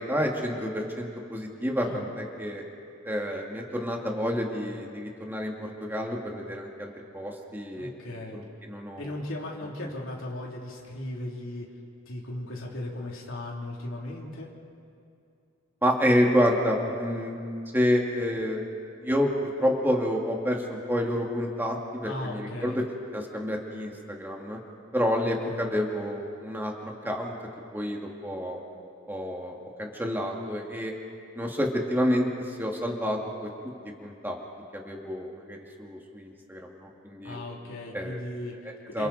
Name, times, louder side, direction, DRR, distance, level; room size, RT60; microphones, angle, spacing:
voice 1, 0.0-2.6 3.0-5.5 5.8-7.9 8.3-9.0 15.8-17.4 17.7-18.6 19.0-22.8 23.1-24.6 24.9-26.7 27.0-27.3 27.7-28.6 29.1-30.9 31.4-33.5 34.0-34.4 34.7-37.4 37.9-38.2 38.6-39.1, equal, 10° right, 0 dB, 2.4 m, -29 dB
voice 2, 7.7-8.4 9.0-11.7 12.1-14.5 22.0-22.8 25.5-25.7 37.2-39.1, left 1 dB, 85° left, -2 dB, 3.3 m, -37 dB
28.5 x 28.0 x 4.3 m, 2.5 s
head